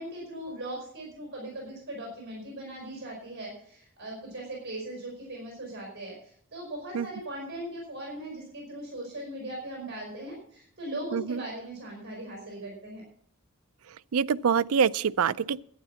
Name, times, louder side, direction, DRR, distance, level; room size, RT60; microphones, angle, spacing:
voice 1, 0.0-13.0, right 1 dB, 55° right, 5.2 m, -39 dB
voice 2, 11.1-11.4 14.1-15.6, right 6 dB, 85° right, 0.4 m, -25 dB
12.0 x 9.8 x 5.8 m
head